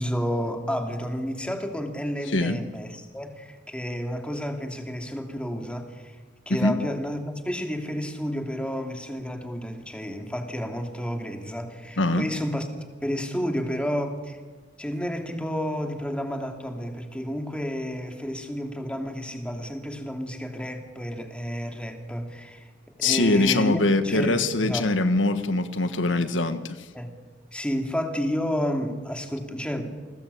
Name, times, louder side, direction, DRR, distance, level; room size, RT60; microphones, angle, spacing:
voice 1, 0.0-6.1 6.5-12.7 13.0-14.4 14.8-22.7 23.0-24.9 26.9-27.1 27.5-29.9, equal, 5° left, 2.9 m, -31 dB
voice 2, 2.3-2.6 6.5-6.8 12.0-12.3 23.0-26.9, left 2 dB, 90° left, 1.4 m, -23 dB
29.0 x 20.0 x 8.5 m
head